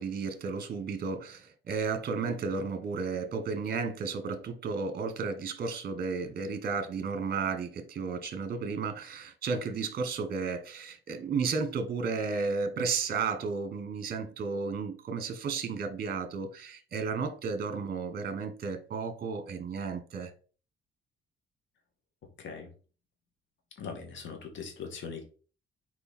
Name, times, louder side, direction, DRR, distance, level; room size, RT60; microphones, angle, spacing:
voice 1, 0.0-20.3, right 5 dB, 50° right, 1.4 m, -33 dB
voice 2, 23.8-25.2, left 5 dB, 70° left, 2.2 m, -40 dB
6.7 x 4.7 x 4.4 m
cardioid pair, 90°, 20 cm